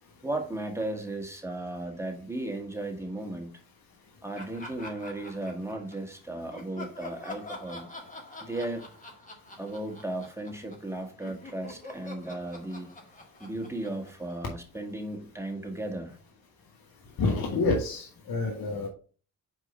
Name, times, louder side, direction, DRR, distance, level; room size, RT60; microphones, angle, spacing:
voice 1, 0.2-3.5 4.2-7.9 8.4-8.9 9.6-12.9 13.4-16.2, right 1 dB, 5° right, 3 dB, 1.7 m, -35 dB
Laughter, 4.3-6.1 6.5-10.9 11.2-14.8, left 2 dB, 20° left, 2.1 m, -45 dB
voice 2, 17.2-18.9, left 3 dB, 60° left, 2 dB, 1.3 m, -28 dB
4.8 x 3.8 x 5.3 m, 0.39 s
hypercardioid pair, 50°, 40 cm